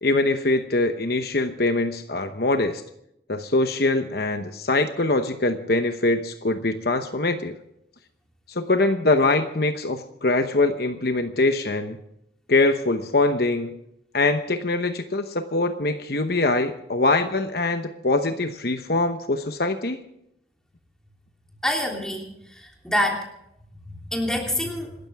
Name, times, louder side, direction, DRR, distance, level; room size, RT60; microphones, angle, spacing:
voice 1, 0.0-2.8 3.3-7.5 8.5-12.0 12.5-13.8 14.1-20.0, left 2 dB, 55° left, 7 dB, 1.0 m, -23 dB
voice 2, 21.6-23.3 23.8-25.0, left 1 dB, 5° left, 0 dB, 3.2 m, -27 dB
26.5 x 13.5 x 3.6 m, 0.79 s
head